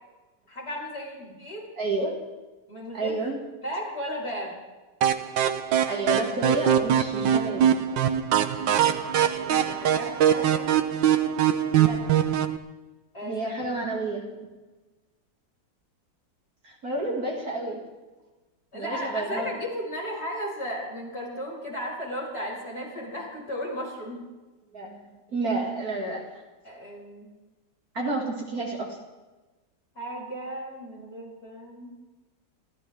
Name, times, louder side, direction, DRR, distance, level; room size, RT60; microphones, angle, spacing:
voice 1, 0.5-1.6 2.7-3.2 3.6-4.6 8.8-8.9 9.2-10.7 13.1-13.5 18.7-24.2 26.6-27.3 29.9-31.9, equal, 35° left, -4 dB, 6.1 m, -35 dB
voice 2, 1.8-2.2 2.9-3.4 5.9-7.7 11.8-12.3 13.2-14.5 16.6-17.8 18.7-19.5 24.7-25.0 25.3-26.4 27.9-29.0, right 2 dB, 55° right, 0 dB, 2.7 m, -30 dB
sound 1, 5.0-12.6, right 9 dB, 85° right, 1.6 m, -23 dB
27.5 x 14.5 x 3.5 m, 1.2 s
omnidirectional pair, 2.0 m